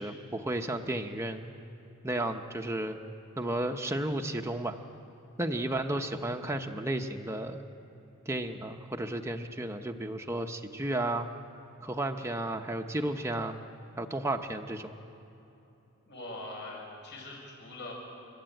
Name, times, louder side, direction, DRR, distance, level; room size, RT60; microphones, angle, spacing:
voice 1, 0.0-1.5 2.0-3.0 3.4-4.8 5.4-7.6 8.3-11.3 11.8-13.6 14.0-14.9, right 1 dB, 15° right, 4 dB, 0.9 m, -33 dB
voice 2, 16.1-17.9, left 2 dB, 55° left, -1 dB, 7.0 m, -43 dB
30.0 x 12.5 x 9.0 m, 3.0 s
head